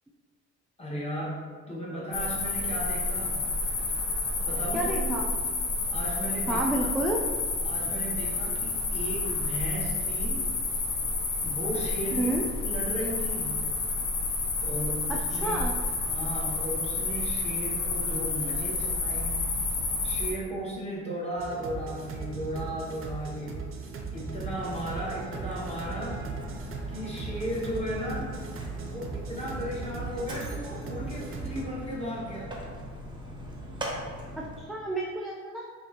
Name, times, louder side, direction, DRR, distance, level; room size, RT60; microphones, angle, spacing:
voice 1, 0.8-3.5 4.4-5.2 5.9-6.8 7.6-10.4 11.4-12.3 12.6-13.6 14.6-15.6 16.0-19.4 20.0-23.6 24.1-26.2 26.9-28.3 28.8-32.6, equal, 20° left, -7 dB, 1.4 m, -35 dB
sound 1, 2.1-20.3, left 3 dB, 90° left, 0.8 m, -30 dB
voice 2, 4.7-5.3 6.5-7.2 12.1-12.4 15.1-15.7 34.6-35.7, right 1 dB, ahead, -3 dB, 0.3 m, -30 dB
sound 2, 21.4-31.7, right 4 dB, 45° right, 0.6 m, -38 dB
Mechanisms, 24.0-34.7, equal, 15° right, 0.8 m, -40 dB
5.2 x 2.6 x 2.8 m, 1.5 s
cardioid pair, 90°, 30 cm